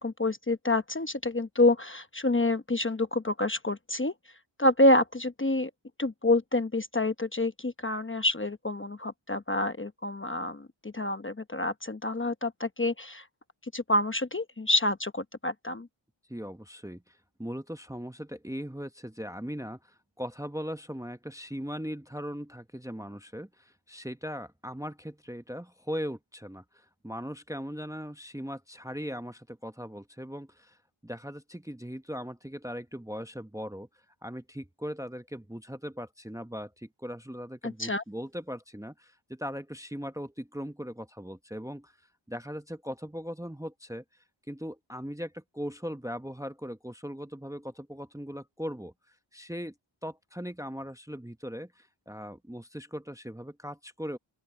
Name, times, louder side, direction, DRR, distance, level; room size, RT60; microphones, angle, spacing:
voice 1, 0.0-4.1 4.6-5.7 6.0-13.3 13.7-15.9 37.6-38.0, left 2 dB, 25° left, 0.9 m, -27 dB
voice 2, 16.3-30.8 31.0-33.9 34.2-41.9 42.3-44.0 44.5-48.9 49.3-49.7 50.0-54.2, equal, 5° right, 0.9 m, -39 dB
open air
wide cardioid pair, 75°, 48 cm